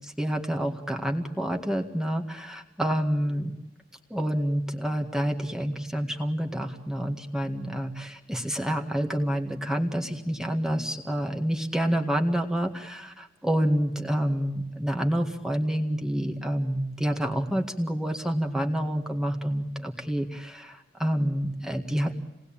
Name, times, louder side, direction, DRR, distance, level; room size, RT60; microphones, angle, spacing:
voice 1, 0.0-3.5 4.1-22.1, equal, 5° right, 3 dB, 1.9 m, -28 dB
29.0 x 19.5 x 8.8 m, 0.96 s
head